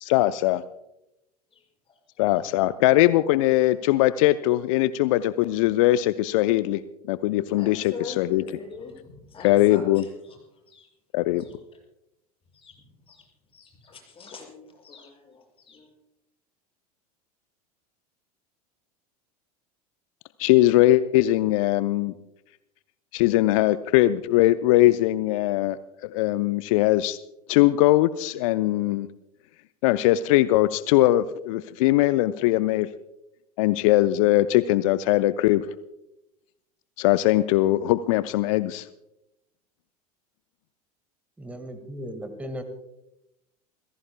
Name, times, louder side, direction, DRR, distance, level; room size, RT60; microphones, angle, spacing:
voice 1, 0.0-0.6 2.2-6.8 7.1-8.4 9.4-10.0 11.1-11.4 20.4-22.1 23.1-27.2 27.5-29.1 29.8-32.9 33.6-35.7 37.0-38.9, left 16 dB, 55° left, 14 dB, 0.6 m, -21 dB
voice 2, 7.4-8.9 9.3-9.9 10.7-10.9 12.5-12.7 13.1-13.2 13.5-15.9, left 5 dB, 30° left, 1 dB, 6.6 m, -42 dB
voice 3, 41.4-42.6, equal, 5° right, 8 dB, 1.7 m, -36 dB
29.0 x 16.0 x 2.2 m, 0.89 s
figure-of-eight pair, 80°, 20 cm